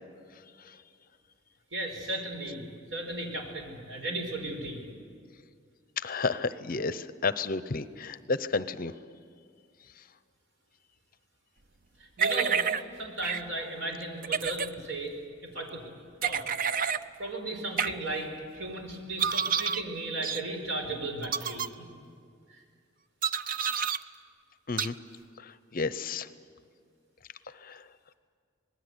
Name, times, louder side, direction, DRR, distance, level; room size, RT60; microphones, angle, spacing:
voice 1, 1.7-2.6 2.9-4.8 12.2-12.6 13.0-15.2 15.4-15.8 16.2-16.4 17.2-21.9, right 2 dB, 75° right, 3 dB, 5.0 m, -35 dB
voice 2, 6.0-8.9 24.7-24.9 25.4-26.3 27.6-27.8, left 4 dB, 45° left, 14 dB, 0.7 m, -32 dB
sound 1, 12.2-12.8 13.2-13.4 14.2-14.7 16.2-17.0 17.8-17.9 19.2-19.8 20.2-20.4 21.2-21.7 23.2-24.0 24.8-24.9, right 7 dB, 45° right, 0.6 m, -29 dB
26.0 x 20.0 x 8.1 m, 2.1 s
head